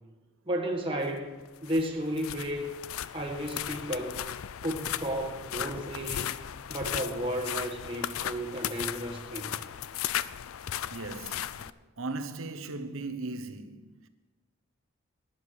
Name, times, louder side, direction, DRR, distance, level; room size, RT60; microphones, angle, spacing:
voice 1, 0.5-1.3 1.6-2.7 3.1-4.1 4.6-6.3 6.7-9.5, equal, 25° right, 1.5 m, -33 dB
sound 1, 1.5-11.7, left 10 dB, 90° left, 0.4 m, -36 dB
voice 2, 10.9-14.1, right 3 dB, 80° right, 1.0 m, -38 dB
12.0 x 10.5 x 6.5 m
head